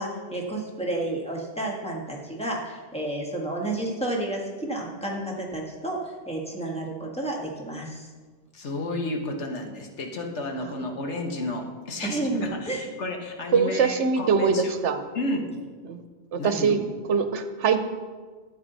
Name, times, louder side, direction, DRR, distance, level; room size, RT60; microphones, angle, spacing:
voice 1, 0.0-8.1 12.0-12.9, right 1 dB, 5° left, -2 dB, 1.7 m, -31 dB
voice 2, 8.5-14.7 15.1-15.6 16.4-16.8, left 2 dB, 80° left, 3 dB, 1.6 m, -32 dB
voice 3, 13.5-15.0 15.8-16.0 16.3-16.8 17.1-17.8, right 5 dB, 90° right, 9 dB, 1.1 m, -23 dB
12.0 x 8.6 x 4.1 m, 1.4 s
omnidirectional pair, 1.2 m